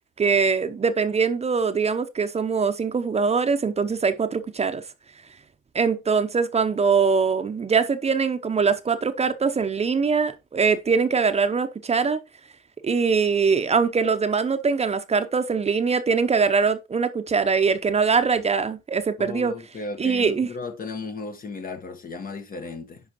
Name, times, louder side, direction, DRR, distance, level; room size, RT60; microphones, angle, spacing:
voice 1, 0.2-4.8 5.7-12.2 12.8-19.5 20.0-20.5, right 5 dB, 30° right, 0.7 m, -22 dB
voice 2, 19.2-23.0, left 3 dB, 45° left, 1.4 m, -35 dB
10.0 x 5.0 x 3.0 m
cardioid pair, 90°, 20 cm